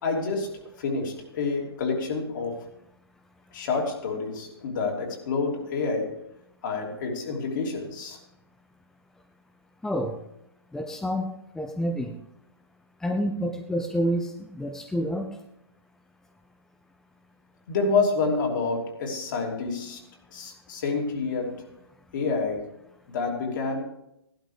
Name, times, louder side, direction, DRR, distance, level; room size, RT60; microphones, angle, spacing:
voice 1, 0.0-2.7 3.5-6.2 6.6-8.2 17.7-20.0 20.3-21.7 22.1-22.8 23.1-23.8, left 4 dB, 50° left, 0 dB, 3.1 m, -28 dB
voice 2, 9.8-10.2 10.7-11.3 11.5-12.2 13.0-15.3, equal, 5° left, 4 dB, 0.7 m, -28 dB
16.0 x 12.0 x 3.4 m, 0.79 s
figure-of-eight pair, 120°, 13 cm